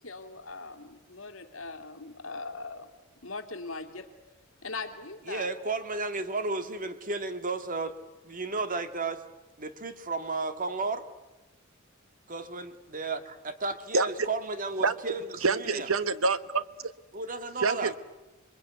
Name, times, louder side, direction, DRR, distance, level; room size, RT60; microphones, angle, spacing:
voice 1, 0.0-2.9 3.2-4.1 4.6-5.5, left 3 dB, 70° left, 5 dB, 2.6 m, -40 dB
voice 2, 5.3-7.9 8.2-9.2 9.6-11.1 12.3-15.9 17.1-17.9, right 3 dB, 40° right, 9 dB, 1.9 m, -33 dB
voice 3, 15.4-16.6 17.6-17.9, right 4 dB, 80° right, 14 dB, 1.2 m, -26 dB
27.0 x 22.5 x 9.3 m, 1.0 s
head